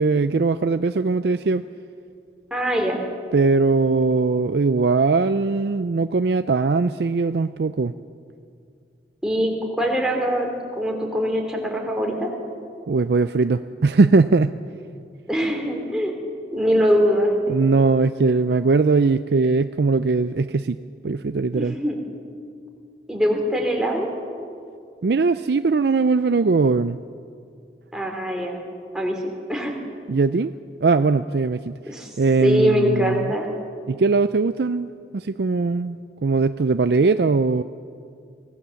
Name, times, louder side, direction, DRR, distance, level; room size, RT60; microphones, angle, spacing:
voice 1, 0.0-1.6 3.3-7.9 12.9-14.5 17.5-20.8 21.0-21.8 25.0-27.0 30.1-30.5 30.8-31.7 32.2-33.3 33.9-34.9 35.1-37.6, right 4 dB, 65° right, 11 dB, 0.5 m, -20 dB
voice 2, 2.5-3.0 9.2-12.3 15.3-16.1 16.5-17.6 21.5-21.9 23.1-24.1 27.9-28.6 28.9-29.2 29.5-29.7 31.9-32.1 32.4-33.5, equal, 5° right, 0 dB, 2.9 m, -22 dB
24.0 x 17.5 x 7.1 m, 2.4 s
head